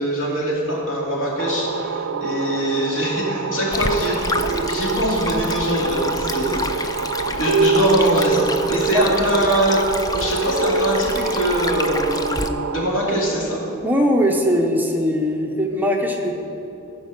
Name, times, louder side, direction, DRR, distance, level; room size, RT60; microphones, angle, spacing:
voice 1, 0.0-9.8 10.1-13.6, equal, 80° left, -4 dB, 2.8 m, -23 dB
sound 1, 1.4-12.9, right 6 dB, 75° right, 0.4 m, -27 dB
sound 2, 2.1-2.7 4.5-5.8 7.5-9.4 10.5-12.0, right 4 dB, 60° left, 2.6 m, -25 dB
Stream, 3.7-12.5, left 3 dB, 20° left, 0.4 m, -29 dB
voice 2, 13.8-16.4, equal, 10° right, 1 dB, 0.7 m, -20 dB
14.5 x 5.3 x 6.5 m, 2.9 s
head